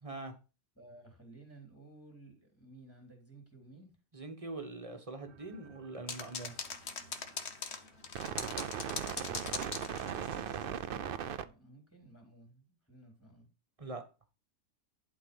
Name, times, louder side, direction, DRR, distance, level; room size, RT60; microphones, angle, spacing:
voice 1, 0.0-0.3 4.1-6.5 13.8-14.0, right 2 dB, 25° right, 6 dB, 1.3 m, -43 dB
voice 2, 0.8-3.9 8.1-13.5, right 2 dB, 10° left, 1 dB, 3.4 m, -56 dB
sound 1, 5.3-5.8 6.9-7.0 8.1-11.5, right 9 dB, 65° right, 0.5 m, -38 dB
sound 2, 6.1-10.6, left 5 dB, 50° left, 1.3 m, -41 dB
11.5 x 4.6 x 5.4 m, 0.31 s
omnidirectional pair, 1.5 m